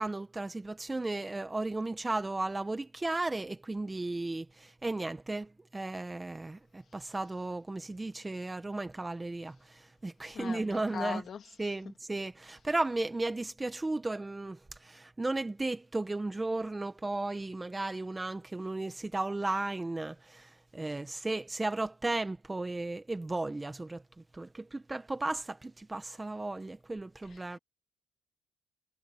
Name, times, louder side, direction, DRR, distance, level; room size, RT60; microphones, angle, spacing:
voice 1, 0.0-11.2 11.6-24.0 24.3-27.6, right 2 dB, 15° right, 1.6 m, -35 dB
voice 2, 10.9-11.4 27.3-27.6, left 7 dB, 45° left, 2.6 m, -39 dB
cardioid pair, 115°, 0 cm